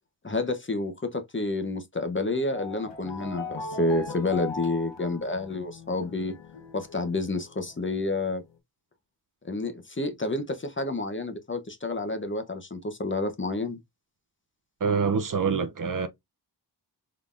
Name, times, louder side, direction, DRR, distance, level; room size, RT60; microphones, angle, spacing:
voice 1, 0.2-6.3 6.7-8.4 9.4-13.8, left 2 dB, 30° left, 0.7 m, -29 dB
sound 1, 2.4-8.2, left 3 dB, 85° left, 0.8 m, -40 dB
voice 2, 14.8-16.1, right 5 dB, 50° right, 0.6 m, -25 dB
3.8 x 3.4 x 2.4 m
wide cardioid pair, 85°, 42 cm